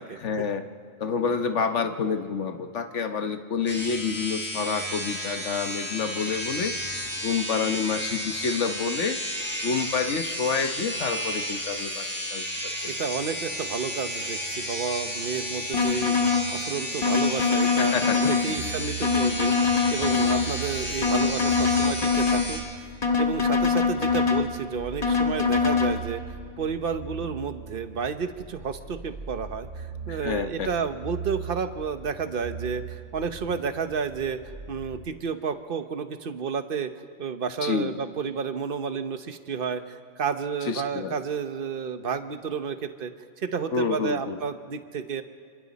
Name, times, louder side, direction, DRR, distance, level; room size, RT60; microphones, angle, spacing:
voice 1, 0.2-0.6 1.0-6.7 7.2-9.2 9.6-12.9 17.8-18.8 30.1-30.7 37.6-37.9 40.6-41.2 43.7-44.4, left 5 dB, 70° left, 7 dB, 1.3 m, -28 dB
sound 1, 3.7-22.6, equal, 10° left, 5.2 m, -32 dB
voice 2, 12.9-16.2 16.5-19.5 19.9-22.6 23.2-36.9 37.2-43.1 43.4-45.2, right 6 dB, 50° right, 9 dB, 1.1 m, -31 dB
sound 2, 15.7-16.5 17.0-18.5 19.0-20.5 21.0-22.5 23.0-24.5 25.0-25.9, left 5 dB, 30° left, 1.6 m, -23 dB
sound 3, 18.6-35.1, right 5 dB, 65° right, 3.8 m, -40 dB
27.5 x 26.0 x 4.2 m, 2.2 s
omnidirectional pair, 1.3 m